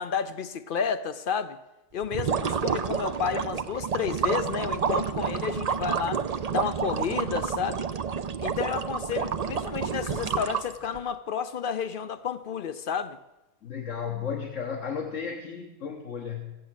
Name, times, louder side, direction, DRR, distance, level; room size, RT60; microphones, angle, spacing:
voice 1, 0.0-1.6 1.9-7.9 8.4-13.2, left 7 dB, 55° left, 0.6 m, -31 dB
sound 1, 2.0-11.0, right 6 dB, 50° right, 0.5 m, -29 dB
voice 2, 13.6-16.6, left 6 dB, 75° left, 1.5 m, -34 dB
15.0 x 8.8 x 7.3 m
omnidirectional pair, 1.3 m